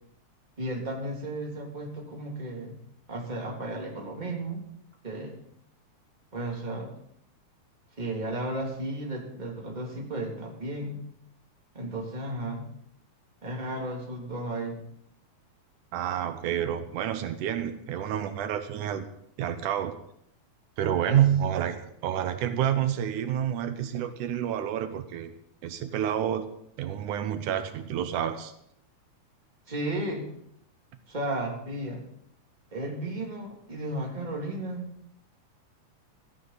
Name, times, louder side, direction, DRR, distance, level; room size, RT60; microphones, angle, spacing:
voice 1, 0.6-2.7 3.1-4.6 5.0-5.3 6.3-7.0 8.0-11.0 11.7-12.6 13.4-14.8 21.0-21.2 29.7-30.3 31.1-32.0 32.7-34.9, right 1 dB, 15° right, -1 dB, 2.7 m, -34 dB
voice 2, 15.9-19.1 19.4-19.9 20.8-25.3 25.6-26.5 26.8-28.5, right 10 dB, 90° right, 9 dB, 2.5 m, -28 dB
16.5 x 14.0 x 4.1 m, 0.71 s
omnidirectional pair, 3.5 m